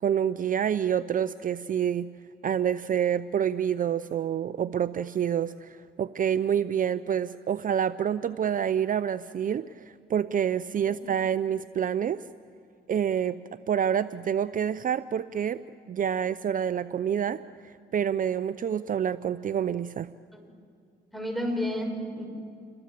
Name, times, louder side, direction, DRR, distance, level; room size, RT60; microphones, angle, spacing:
voice 1, 0.0-2.1 2.4-12.2 12.9-13.4 13.7-15.6 15.9-20.1, right 8 dB, 45° right, 14 dB, 0.6 m, -27 dB
voice 2, 21.1-22.3, equal, ahead, 4 dB, 5.9 m, -31 dB
28.5 x 21.5 x 7.5 m, 2.4 s
cardioid pair, 70°, 18 cm